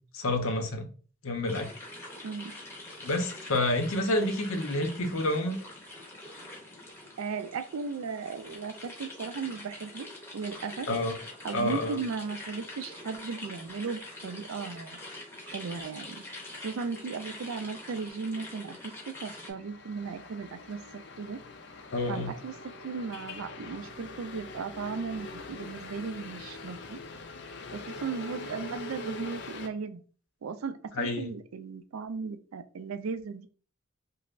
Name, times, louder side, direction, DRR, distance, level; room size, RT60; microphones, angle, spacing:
voice 1, 0.1-0.9 1.2-1.7 3.0-5.6 10.9-11.1 11.5-12.0 21.9-22.3 30.9-31.3, left 1 dB, 80° left, 5 dB, 0.7 m, -29 dB
sound 1, 1.5-19.5, left 2 dB, 10° left, 0.8 m, -45 dB
voice 2, 7.2-10.1 10.3-10.9 11.4-15.2 15.5-16.2 16.6-18.8 19.1-21.4 22.1-22.5 22.8-27.0 27.7-30.0 30.4-33.5, right 5 dB, 85° right, 11 dB, 0.4 m, -36 dB
sound 2, 19.3-29.7, left 3 dB, 55° left, 0.4 m, -43 dB
5.3 x 2.0 x 2.5 m, 0.39 s
head